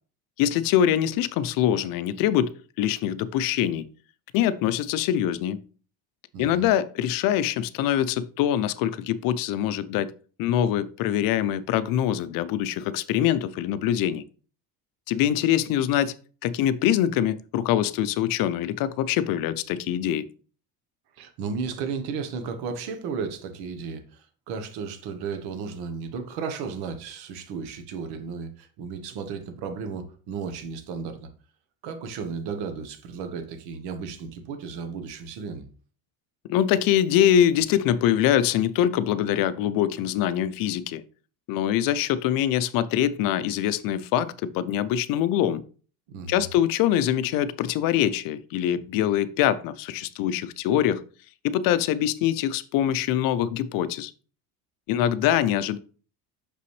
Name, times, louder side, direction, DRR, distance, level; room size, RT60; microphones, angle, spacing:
voice 1, 0.4-3.9 4.3-5.7 6.4-10.1 10.4-14.2 15.1-16.1 16.4-20.3 36.5-41.0 41.5-45.6 46.3-51.0 51.4-54.1 54.9-55.8, left 11 dB, 60° left, 0.5 m, -24 dB
voice 2, 6.3-6.6 21.1-31.3 31.8-35.7 46.1-46.5, right 5 dB, 80° right, 1.1 m, -34 dB
6.1 x 5.6 x 3.1 m
cardioid pair, 160°, 38 cm